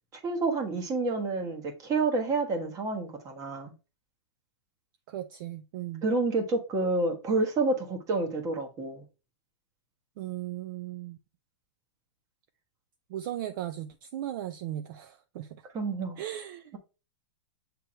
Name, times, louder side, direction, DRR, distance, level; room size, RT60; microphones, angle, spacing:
voice 1, 0.2-3.7 6.0-9.0 15.7-16.2, right 3 dB, 20° right, 1.3 m, -29 dB
voice 2, 5.1-6.0 10.2-11.2 13.1-15.6 16.2-16.8, right 12 dB, 45° right, 0.5 m, -37 dB
7.5 x 3.5 x 4.3 m
hypercardioid pair, 155°, 15 cm